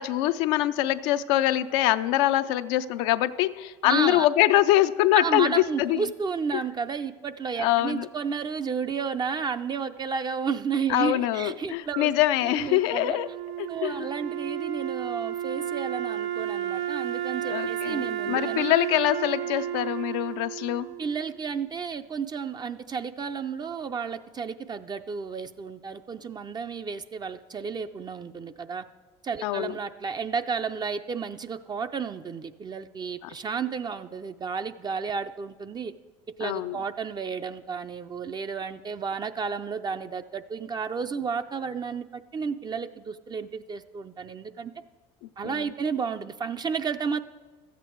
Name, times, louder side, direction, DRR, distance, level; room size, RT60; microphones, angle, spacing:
voice 1, 0.0-6.0 7.6-8.1 10.9-13.3 13.6-14.1 17.4-20.9 29.4-29.7 36.4-36.8 45.4-45.7, left 14 dB, 80° left, 11 dB, 0.4 m, -24 dB
voice 2, 3.8-4.3 5.1-12.1 12.4-13.2 13.7-18.7 21.0-28.8 29.2-35.9 36.4-44.7 45.4-47.2, right 5 dB, 30° right, 9 dB, 0.4 m, -32 dB
Wind instrument woodwind instrument, 12.6-21.6, right 11 dB, 90° right, 0.5 m, -32 dB
13.0 x 8.2 x 4.5 m, 1.3 s
supercardioid pair, 80°, 14 cm